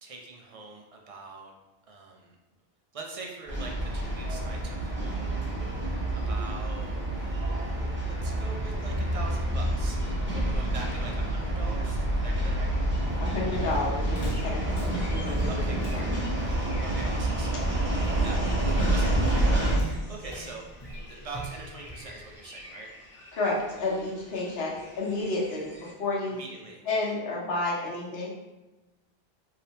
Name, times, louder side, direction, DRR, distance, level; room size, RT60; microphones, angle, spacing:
voice 1, 0.0-1.5 1.9-2.4 2.9-5.7 6.3-10.0 10.3-12.7 15.5-16.0 16.8-20.6 21.1-22.9 26.3-26.8, right 3 dB, 55° right, 0 dB, 0.4 m, -43 dB
sound 1, 3.5-19.8, right 1 dB, 10° right, 1.0 m, -28 dB
Walk footsteps, 13.0-22.3, right 1 dB, 30° left, 0.6 m, -38 dB
voice 2, 13.2-15.6 15.9-16.1 23.3-26.4 26.8-28.3, left 2 dB, 75° left, -4 dB, 1.0 m, -31 dB
sound 2, 14.2-25.9, left 1 dB, 50° left, 0.9 m, -49 dB
3.2 x 2.7 x 2.7 m, 1.1 s
omnidirectional pair, 1.0 m